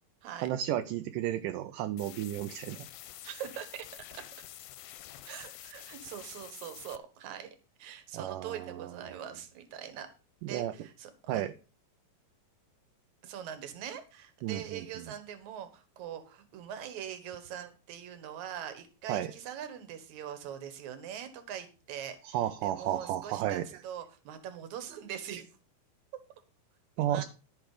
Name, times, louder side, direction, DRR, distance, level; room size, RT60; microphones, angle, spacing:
voice 1, 0.4-2.9 8.1-8.9 10.4-10.7 11.3-11.5 14.4-14.9 19.1-19.3 22.2-23.7 27.0-27.2, right 12 dB, 80° right, 8 dB, 2.2 m, -32 dB
sound 1, 2.0-7.0, left 13 dB, 75° left, 2.0 m, -48 dB
voice 2, 3.2-4.2 5.3-10.1 10.4-11.5 13.2-22.4 22.6-25.4 27.0-27.2, right 9 dB, 65° right, 9 dB, 2.5 m, -42 dB
12.5 x 6.4 x 4.9 m, 0.34 s
omnidirectional pair, 3.9 m